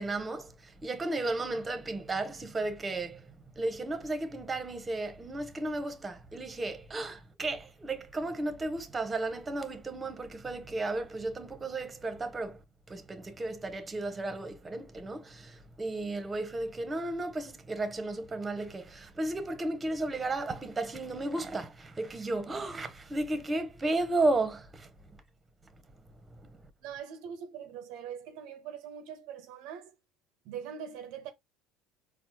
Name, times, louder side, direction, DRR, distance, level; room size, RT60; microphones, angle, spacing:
voice 1, 0.0-12.6 12.9-24.9 26.3-26.7, right 2 dB, 20° right, 0.7 m, -34 dB
voice 2, 26.8-29.9 30.4-31.3, right 8 dB, 70° right, 0.5 m, -42 dB
4.2 x 2.0 x 2.8 m
hypercardioid pair, 80°, 0 cm